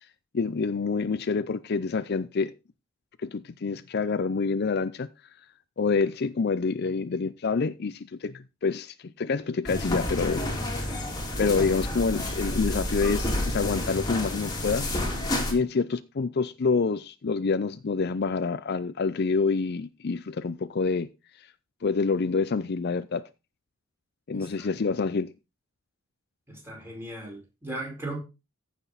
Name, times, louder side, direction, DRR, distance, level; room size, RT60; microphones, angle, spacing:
voice 1, 0.3-2.5 3.2-5.1 5.8-10.9 11.4-14.9 15.5-21.1 21.4-21.5 21.8-23.2 24.3-25.3, left 4 dB, 50° left, 0.5 m, -27 dB
sound 1, 9.7-15.5, left 1 dB, 20° left, 2.5 m, -30 dB
voice 2, 24.3-24.7 26.5-28.2, right 2 dB, 10° right, 4.8 m, -37 dB
14.5 x 6.2 x 4.0 m
head